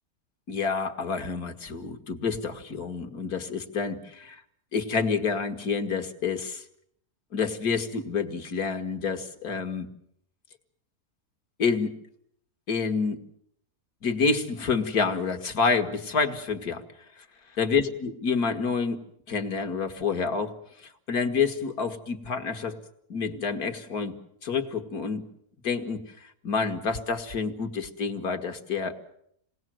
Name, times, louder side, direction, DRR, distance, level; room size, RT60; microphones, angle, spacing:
voice 1, 0.5-4.4 4.7-6.6 7.3-9.9 11.6-11.9 12.7-13.2 14.0-16.8 17.6-20.6 20.8-22.8 23.1-24.1 24.4-25.2 25.6-26.0 26.4-29.0, left 5 dB, 85° left, 6 dB, 2.4 m, -28 dB
27.5 x 20.0 x 7.7 m, 0.71 s
omnidirectional pair, 1.5 m